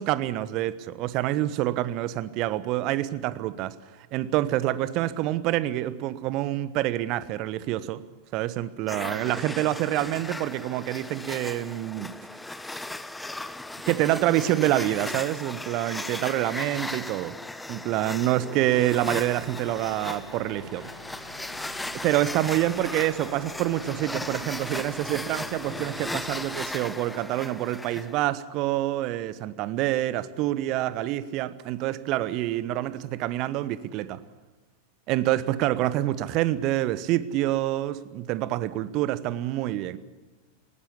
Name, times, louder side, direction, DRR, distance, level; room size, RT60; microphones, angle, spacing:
voice 1, 0.0-3.7 4.1-8.0 8.3-12.1 13.9-17.4 17.7-20.9 22.0-34.2 35.1-40.0, right 14 dB, 40° right, 1.1 m, -27 dB
sound 1, 8.9-28.2, left 2 dB, 5° left, 0.9 m, -37 dB
sound 2, 19.0-26.7, left 1 dB, 80° right, 3.5 m, -49 dB
20.0 x 19.0 x 8.6 m
figure-of-eight pair, 90°, 0 cm